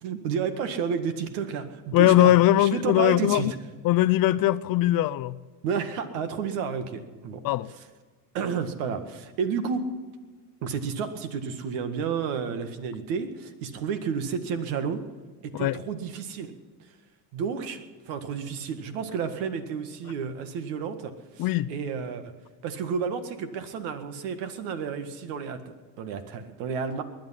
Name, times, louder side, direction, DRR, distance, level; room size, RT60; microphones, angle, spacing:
voice 1, 0.0-3.5 5.6-7.4 8.3-9.9 10.6-15.0 15.4-16.5 17.3-17.8 18.1-22.3 22.6-27.0, right 6 dB, 75° right, 1.9 m, -31 dB
voice 2, 1.9-3.5 3.8-5.4 7.4-7.7 15.5-15.8 21.4-21.7, left 14 dB, 45° left, 0.6 m, -21 dB
20.0 x 10.5 x 5.8 m
supercardioid pair, 105°, 47 cm